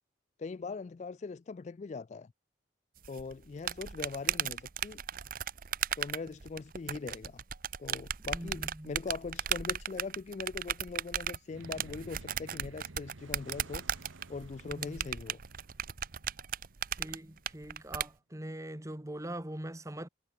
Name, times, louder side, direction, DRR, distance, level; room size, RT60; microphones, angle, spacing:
voice 1, 0.4-2.3 3.1-5.0 6.0-7.4 7.8-14.0 14.3-15.4, left 4 dB, 35° left, 0.3 m, -41 dB
sound 1, 3.0-18.1, right 9 dB, 45° right, 0.8 m, -36 dB
voice 2, 8.3-8.9 14.6-15.0 17.0-20.1, right 1 dB, 15° right, 1.4 m, -42 dB
sound 2, 11.4-18.1, right 2 dB, 90° right, 1.3 m, -54 dB
head